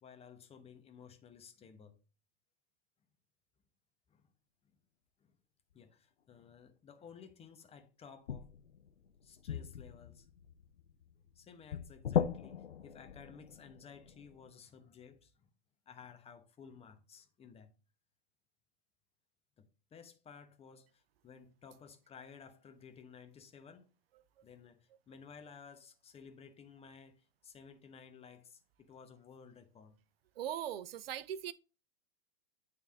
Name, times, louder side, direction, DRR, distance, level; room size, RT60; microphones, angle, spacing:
voice 1, 0.0-2.0 4.1-4.3 5.2-5.4 5.7-8.5 9.2-10.3 11.3-15.5 15.9-17.7 19.6-23.9 24.4-30.0, left 6 dB, 20° left, 1.0 m, -55 dB
sound 1, 6.3-6.4 8.3-14.5, left 9 dB, 85° left, 0.7 m, -39 dB
voice 2, 30.4-31.5, right 10 dB, 65° right, 0.6 m, -40 dB
9.1 x 3.5 x 3.5 m
hypercardioid pair, 110°, 31 cm